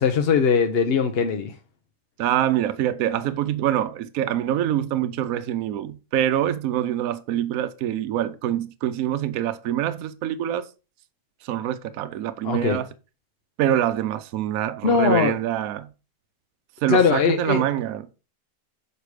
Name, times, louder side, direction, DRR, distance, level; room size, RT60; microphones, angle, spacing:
voice 1, 0.0-1.5 12.4-12.8 14.8-15.4 16.9-17.6, left 5 dB, 50° left, 0.8 m, -20 dB
voice 2, 2.2-10.7 11.4-12.9 13.6-15.9 16.8-18.1, right 11 dB, 75° right, 1.0 m, -25 dB
6.7 x 4.9 x 4.7 m
omnidirectional pair, 1.6 m